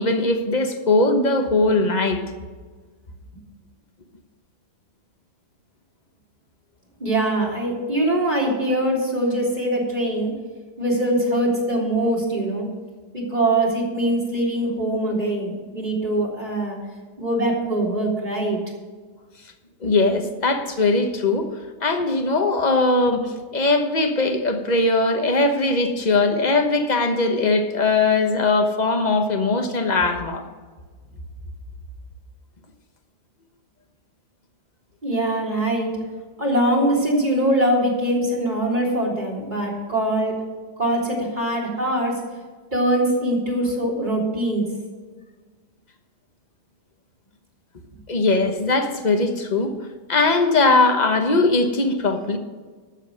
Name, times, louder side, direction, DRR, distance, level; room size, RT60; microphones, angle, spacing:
voice 1, 0.0-2.2 19.8-21.5 21.8-23.3 23.5-30.4 48.1-49.7 50.1-52.4, left 3 dB, 30° left, 6 dB, 1.2 m, -20 dB
voice 2, 7.0-10.3 10.8-12.7 13.1-16.8 17.2-18.6 35.0-35.9 36.4-40.3 40.8-42.2 42.7-44.6, right 1 dB, 25° right, -3 dB, 3.5 m, -22 dB
12.5 x 7.4 x 6.4 m, 1.4 s
omnidirectional pair, 1.7 m